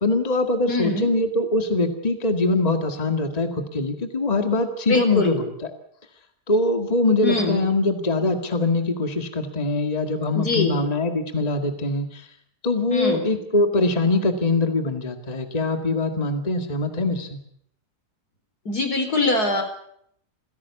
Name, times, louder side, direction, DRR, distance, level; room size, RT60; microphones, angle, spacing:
voice 1, 0.0-5.5 6.5-12.3 12.6-17.4, left 2 dB, 25° left, 7 dB, 2.1 m, -23 dB
voice 2, 0.7-1.1 4.9-5.4 7.2-7.6 10.3-10.8 12.9-13.3 18.7-19.6, left 2 dB, 70° left, 6 dB, 4.5 m, -23 dB
27.0 x 16.5 x 8.3 m, 0.69 s
omnidirectional pair, 1.7 m